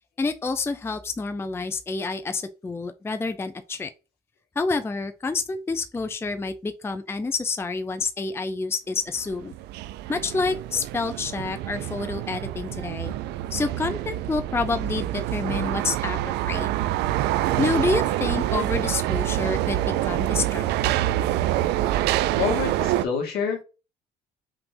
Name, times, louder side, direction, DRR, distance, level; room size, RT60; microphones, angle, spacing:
voice 1, 0.2-3.9 4.6-9.5 10.1-13.1 13.5-16.7 17.6-21.0, left 4 dB, 15° left, 0.5 m, -28 dB
sound 1, 9.2-23.0, right 14 dB, 80° right, 0.5 m, -26 dB
voice 2, 22.4-23.6, left 6 dB, 70° left, 1.9 m, -27 dB
5.8 x 3.4 x 2.6 m
cardioid pair, 110°, 17 cm